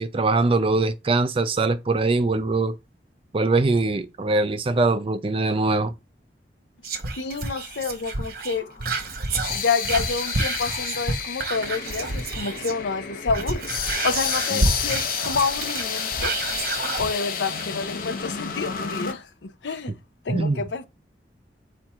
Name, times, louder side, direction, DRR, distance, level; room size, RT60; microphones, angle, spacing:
voice 1, 0.0-2.8 3.3-5.9 14.5-14.6 20.3-20.6, right 3 dB, 30° right, 0.4 m, -22 dB
Whispering, 6.8-12.8 13.2-17.1 17.6-17.7, right 3 dB, 60° right, 0.9 m, -29 dB
voice 2, 7.2-8.7 9.5-13.7 14.0-16.3 17.0-19.9 20.3-20.8, left 4 dB, 85° left, 0.6 m, -28 dB
sound 1, 8.6-19.1, left 6 dB, 55° left, 0.7 m, -30 dB
4.4 x 2.5 x 4.7 m
head